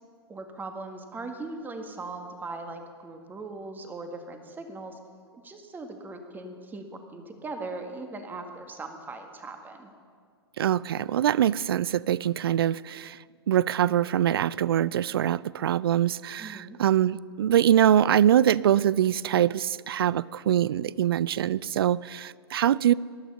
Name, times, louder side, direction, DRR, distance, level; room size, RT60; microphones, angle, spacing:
voice 1, 0.3-5.0 5.4-9.9 16.4-16.8, right 3 dB, 15° right, 1.7 m, -39 dB
voice 2, 10.6-13.2 13.5-22.9, right 10 dB, 60° right, 0.4 m, -23 dB
19.5 x 12.5 x 5.6 m
figure-of-eight pair, 105°, 14 cm